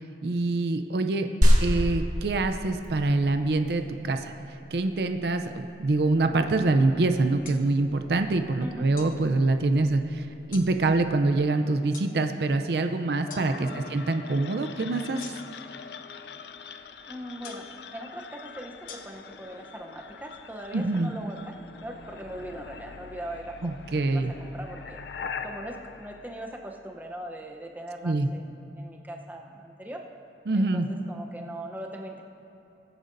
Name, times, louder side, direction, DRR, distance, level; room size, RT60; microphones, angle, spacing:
voice 1, 0.2-1.3 1.6-4.3 4.7-10.2 10.5-15.3 20.7-21.1 23.6-24.3 28.0-28.3 30.5-30.9, right 2 dB, 60° right, 7 dB, 0.5 m, -25 dB
sound 1, 1.4-11.4, equal, 45° right, 1.9 m, -29 dB
sound 2, 7.4-7.6 9.0-9.2 10.5-10.7 11.9-12.1 13.3-13.5 15.2-15.7 17.4-17.8 18.9-19.0, left 5 dB, 50° left, 1.0 m, -43 dB
sound 3, 13.3-27.2, left 6 dB, 65° left, 0.4 m, -43 dB
voice 2, 17.1-25.0 25.4-30.1 30.5-32.2, right 1 dB, 10° right, 1 dB, 0.7 m, -40 dB
21.5 x 9.2 x 2.6 m, 3.0 s
head